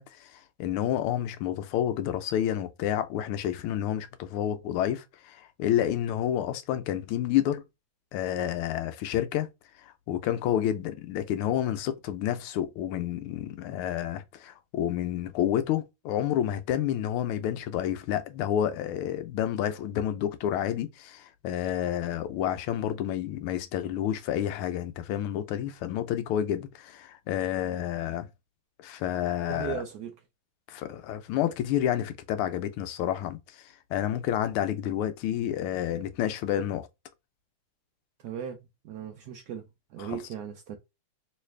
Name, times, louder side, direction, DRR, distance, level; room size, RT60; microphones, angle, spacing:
voice 1, 0.0-7.6 8.1-9.5 9.8-28.3 28.8-29.8 30.7-36.9 40.0-40.2, left 11 dB, 85° left, 1.5 m, -29 dB
voice 2, 29.5-30.1 38.2-38.6 38.8-39.7 39.9-40.8, right 8 dB, 80° right, 0.8 m, -37 dB
3.2 x 3.2 x 3.1 m
omnidirectional pair, 2.4 m